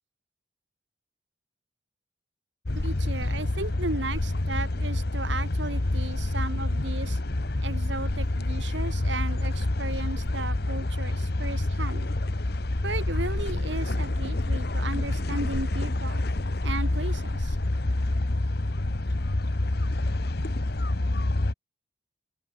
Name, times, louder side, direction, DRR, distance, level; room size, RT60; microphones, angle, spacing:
sound 1, 2.6-21.5, left 2 dB, 55° left, 1.1 m, -27 dB
voice 1, 2.8-7.2 7.6-12.1 12.8-16.2 16.6-17.6, right 2 dB, 70° right, 4.2 m, -35 dB
open air
head